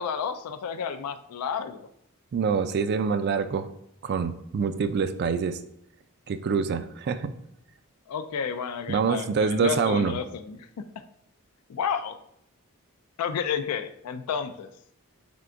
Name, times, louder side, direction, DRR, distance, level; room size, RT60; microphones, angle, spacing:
voice 1, 0.0-1.9 8.1-10.7 11.7-12.2 13.2-14.7, left 7 dB, 85° left, 10 dB, 0.4 m, -31 dB
voice 2, 2.3-3.7 4.0-5.6 6.3-7.3 8.9-10.2, right 5 dB, 50° right, 11 dB, 0.3 m, -25 dB
3.6 x 3.3 x 3.8 m, 0.75 s
head